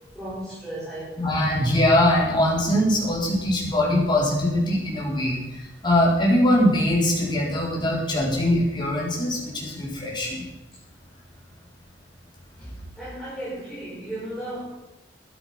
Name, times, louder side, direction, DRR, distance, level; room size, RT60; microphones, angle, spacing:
voice 1, 0.1-1.2 12.6-14.7, right 1 dB, ahead, -11 dB, 6.5 m, -35 dB
voice 2, 1.2-5.4 5.8-10.4, left 1 dB, 25° left, -4 dB, 4.7 m, -22 dB
13.5 x 12.5 x 6.0 m, 0.97 s
head